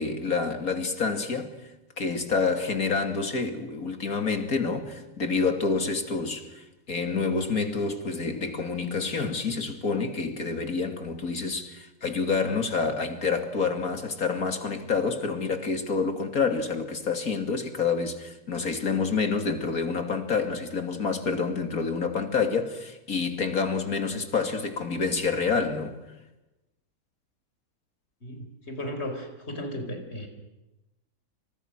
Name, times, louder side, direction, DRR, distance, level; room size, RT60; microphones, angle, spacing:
voice 1, 0.0-1.5 2.0-26.0, left 4 dB, 85° left, 3.2 m, -28 dB
voice 2, 28.2-30.3, left 1 dB, 50° left, 4.9 m, -35 dB
29.5 x 26.5 x 6.3 m
omnidirectional pair, 1.5 m